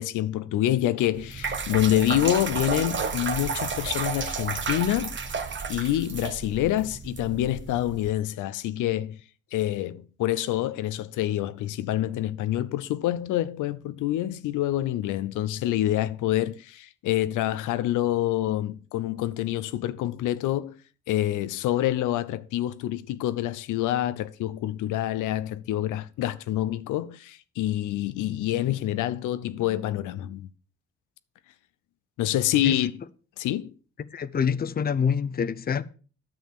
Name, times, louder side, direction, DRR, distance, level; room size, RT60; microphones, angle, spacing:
voice 1, 0.0-5.1 5.7-9.2 9.5-20.7 21.1-30.5 32.2-32.9 33.4-33.7, left 13 dB, 90° left, 0.7 m, -27 dB
sound 1, 1.1-8.1, right 5 dB, 40° right, 1.4 m, -32 dB
voice 2, 34.1-35.8, left 6 dB, 30° left, 0.6 m, -26 dB
9.7 x 6.5 x 6.8 m
cardioid pair, 90°, 30 cm